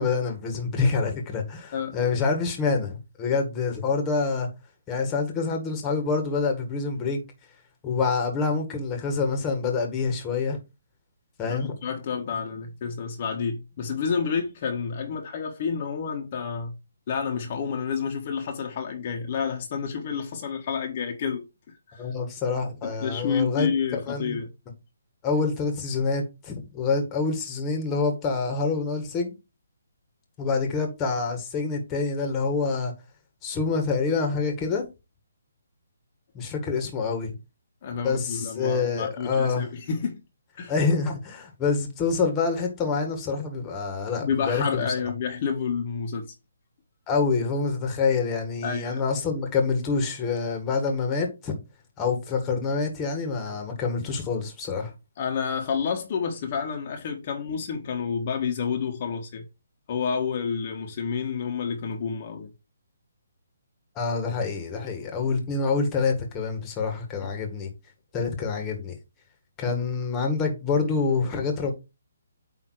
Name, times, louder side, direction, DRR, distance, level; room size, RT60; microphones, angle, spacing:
voice 1, 0.0-4.5 4.9-7.2 7.8-10.6 11.4-11.7 22.0-23.7 24.1-24.4 25.2-29.3 30.4-32.9 33.4-34.9 36.3-37.3 38.0-39.7 40.7-44.9 47.1-51.6 52.0-54.9 64.0-67.7 68.1-68.9 69.6-71.7, left 4 dB, 20° left, 1.8 m, -26 dB
voice 2, 11.4-16.8 17.1-21.4 21.9-22.1 22.8-24.5 37.8-40.2 40.6-40.7 44.2-46.3 48.6-49.0 53.5-53.6 55.2-59.4 59.9-62.5, left 6 dB, 40° left, 1.5 m, -29 dB
8.9 x 3.2 x 4.8 m
hypercardioid pair, 155°, 0 cm